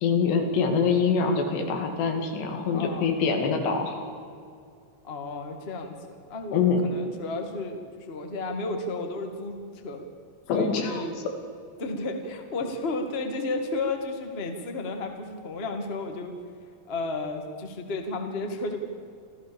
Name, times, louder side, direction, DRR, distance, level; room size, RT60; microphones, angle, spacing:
voice 1, 0.0-4.1 6.5-6.8 10.5-11.0, left 5 dB, 85° left, 4 dB, 4.5 m, -24 dB
voice 2, 2.5-3.1 5.0-10.0 10.5-11.2 11.8-16.3 16.9-18.8, left 2 dB, 25° left, 4 dB, 1.3 m, -33 dB
27.0 x 15.5 x 7.2 m, 2.3 s
omnidirectional pair, 4.8 m